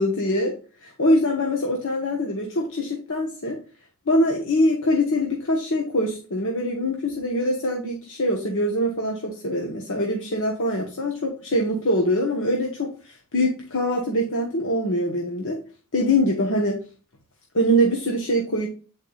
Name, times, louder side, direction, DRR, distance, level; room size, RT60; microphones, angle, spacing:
voice 1, 0.0-3.6 4.1-15.6 15.9-16.8 17.5-18.7, equal, 60° left, 0 dB, 1.3 m, -23 dB
8.6 x 4.8 x 2.4 m, 0.36 s
head